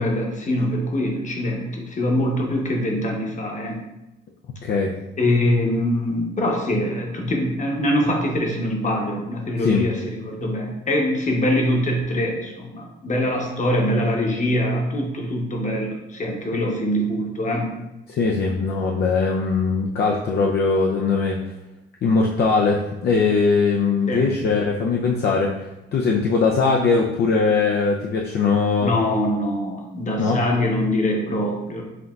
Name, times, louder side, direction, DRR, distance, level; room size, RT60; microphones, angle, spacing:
voice 1, 0.0-3.8 5.2-17.7 24.1-24.3 28.8-31.8, left 1 dB, 40° left, 0 dB, 1.0 m, -23 dB
voice 2, 4.6-4.9 9.6-9.8 18.1-21.4 22.0-28.9 30.2-30.4, left 4 dB, 55° left, 0 dB, 0.5 m, -20 dB
5.8 x 2.6 x 2.3 m, 0.94 s
cardioid pair, 90°, 20 cm